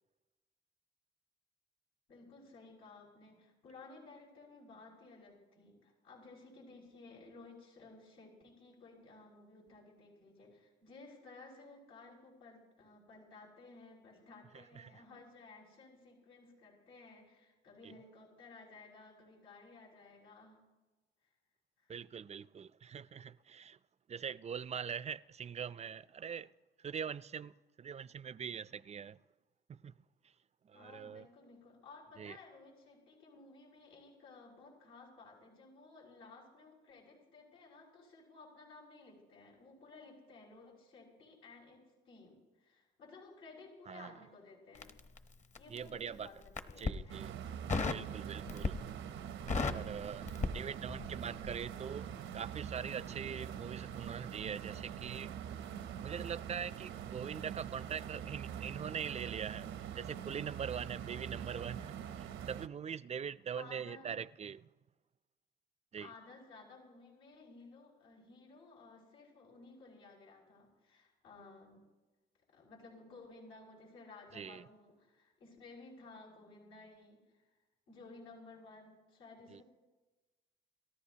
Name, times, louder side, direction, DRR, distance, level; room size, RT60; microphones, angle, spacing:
voice 1, 2.1-20.6 21.8-21.9 30.7-45.0 45.6-47.3 47.8-48.4 63.5-64.1 66.0-71.8 72.5-77.5 77.9-79.6, left 3 dB, 85° left, 6.2 m, -56 dB
voice 2, 14.5-15.0 17.8-17.9 21.9-23.8 24.1-26.5 26.8-29.2 29.7-29.9 30.6-31.3 32.2-32.4 43.9-44.2 45.7-46.3 46.8-47.3 47.9-48.8 49.7-55.3 56.0-64.7 65.9-66.1 74.3-74.7 79.5-79.6, right 7 dB, 35° right, 0.4 m, -43 dB
Crackle, 44.8-45.9 46.4-47.0 47.7-48.1 48.5-49.0 49.2-51.2 51.4-51.7, left 4 dB, 35° left, 1.0 m, -35 dB
sound 1, 47.1-62.7, right 9 dB, 75° right, 0.8 m, -44 dB
29.0 x 14.0 x 2.8 m
cardioid pair, 90°, 20 cm